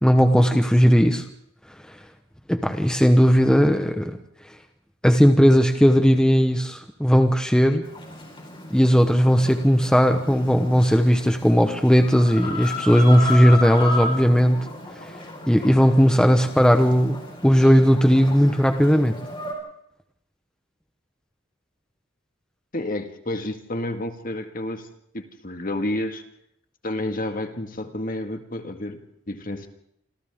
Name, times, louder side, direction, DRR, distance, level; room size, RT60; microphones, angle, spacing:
voice 1, 0.0-1.2 2.5-4.2 5.0-7.9 8.7-14.6 15.5-17.2 17.4-19.2, equal, 5° left, 6 dB, 1.0 m, -17 dB
Chicken rooster, 7.8-19.5, left 2 dB, 25° left, 4.7 m, -34 dB
voice 2, 22.7-24.9 25.1-26.2 26.8-29.7, left 1 dB, 45° left, 6 dB, 1.9 m, -30 dB
27.5 x 26.0 x 3.7 m, 0.75 s
head